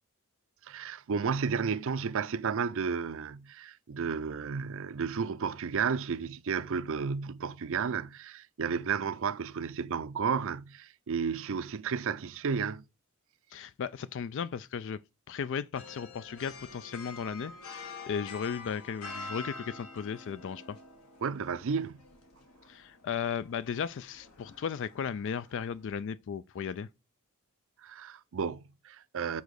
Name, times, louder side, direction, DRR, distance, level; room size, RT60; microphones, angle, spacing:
voice 1, 0.7-12.8 21.2-22.0 27.8-29.4, right 6 dB, 65° right, 0.5 m, -32 dB
voice 2, 13.5-15.0 15.3-20.8 22.7-26.9, left 7 dB, 60° left, 0.3 m, -36 dB
sound 1, 15.7-26.0, left 3 dB, 80° left, 2.0 m, -47 dB
7.1 x 4.0 x 6.4 m
head